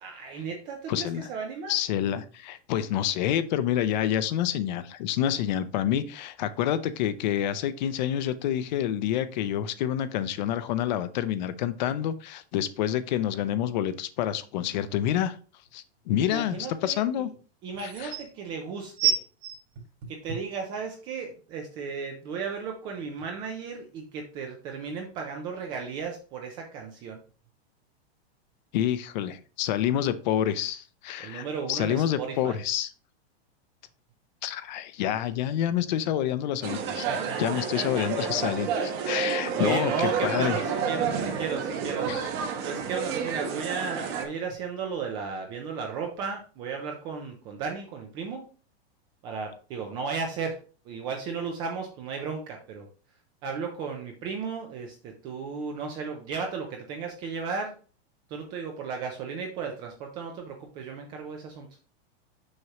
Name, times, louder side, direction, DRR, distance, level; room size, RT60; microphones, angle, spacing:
voice 1, 0.0-1.7 16.2-17.3 17.6-19.2 20.1-27.2 31.2-32.6 36.7-38.3 38.7-39.2 39.5-42.2 42.6-48.5 49.2-52.9 53.4-57.8 58.3-61.7, right 5 dB, 15° right, 3 dB, 0.3 m, -35 dB
voice 2, 0.9-1.3 1.7-15.4 15.7-17.3 17.8-18.1 28.7-32.9 34.4-37.1 37.4-38.7 39.1-40.6 42.1-42.2, left 10 dB, 45° left, 13 dB, 0.6 m, -28 dB
sound 1, 15.7-15.8 17.3-17.4 17.7-18.3 19.0-20.6 21.3-21.4, right 8 dB, 50° right, 1.8 m, -28 dB
sound 2, 36.6-44.3, right 6 dB, 30° right, 1.0 m, -30 dB
6.4 x 6.0 x 2.9 m, 0.37 s
supercardioid pair, 160°, 32 cm